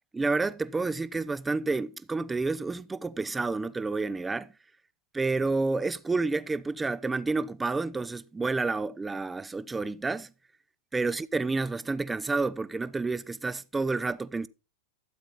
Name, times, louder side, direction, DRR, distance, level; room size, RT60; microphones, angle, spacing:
voice 1, 0.1-4.5 5.1-10.3 10.9-14.5, right 3 dB, 10° right, 0.6 m, -29 dB
13.0 x 7.7 x 4.1 m
hypercardioid pair, 120°, 0 cm